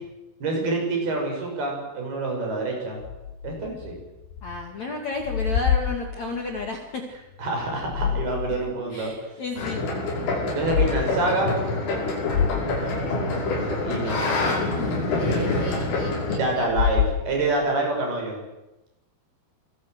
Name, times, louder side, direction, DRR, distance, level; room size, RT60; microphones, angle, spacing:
voice 1, 0.4-3.0 3.4-4.0 7.4-9.1 10.5-11.6 12.8-14.5 15.1-15.7 16.3-18.4, right 2 dB, 50° right, 1 dB, 8.0 m, -27 dB
sound 1, 3.0-4.7 5.0-6.7 7.6-8.7 9.1-9.2 10.5-10.9 11.4-11.5 11.9-12.0 12.3-13.6 16.6-17.7, left 8 dB, 70° left, 2.5 m, -27 dB
voice 2, 4.4-7.0 8.9-9.8 15.2-17.0, left 3 dB, 45° left, 3 dB, 2.7 m, -33 dB
sound 2, 9.6-16.4, left 2 dB, 85° left, 8.2 m, -26 dB
26.0 x 20.0 x 8.0 m, 0.96 s
omnidirectional pair, 5.6 m